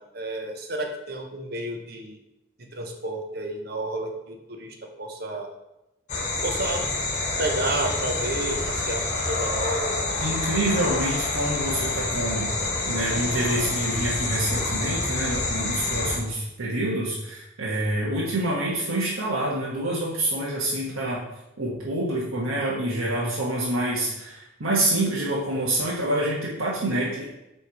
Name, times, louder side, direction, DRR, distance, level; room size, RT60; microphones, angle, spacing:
voice 1, 0.1-2.2 2.7-5.5 6.4-6.8 7.4-10.4, right 2 dB, 50° right, 3 dB, 1.0 m, -31 dB
sound 1, 6.1-16.2, left 2 dB, 35° left, 1.2 m, -27 dB
voice 2, 10.2-12.5 12.9-21.2 21.6-27.3, right 1 dB, 85° right, -6 dB, 1.4 m, -27 dB
7.3 x 3.5 x 4.8 m, 0.90 s
head